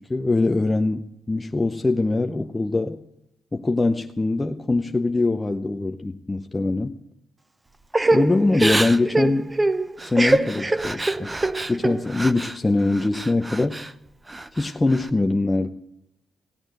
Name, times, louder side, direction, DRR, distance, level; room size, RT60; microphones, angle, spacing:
voice 1, 0.0-3.0 3.5-6.9 8.1-9.5 10.0-11.4 11.7-13.8 14.5-15.7, left 2 dB, 15° left, 5 dB, 0.7 m, -23 dB
Crying sobbing / Breathing, 7.9-12.6 12.9-13.9 14.3-15.1, right 2 dB, 15° right, 0.7 m, -24 dB
16.5 x 8.8 x 9.1 m, 0.86 s
cardioid pair, 90°, 0 cm